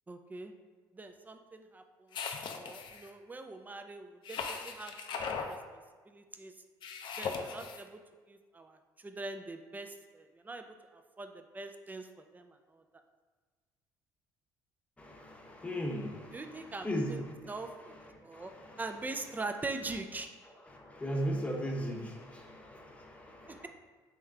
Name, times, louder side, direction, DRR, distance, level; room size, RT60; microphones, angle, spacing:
voice 1, 0.1-0.5 0.9-2.2 2.6-4.9 5.3-5.8 6.1-6.5 7.2-8.0 8.3-12.1 12.3-12.8 16.3-18.5 18.8-20.3 23.5-23.7, right 3 dB, 20° right, 7 dB, 0.4 m, -43 dB
sound 1, 2.1-3.1 4.2-5.5 6.8-7.8, left 5 dB, 60° left, 0.4 m, -38 dB
voice 2, 15.0-17.5 18.3-18.8 20.7-23.6, equal, 15° left, 0 dB, 0.8 m, -37 dB
3.6 x 3.1 x 3.4 m, 1.4 s
supercardioid pair, 70°, 9 cm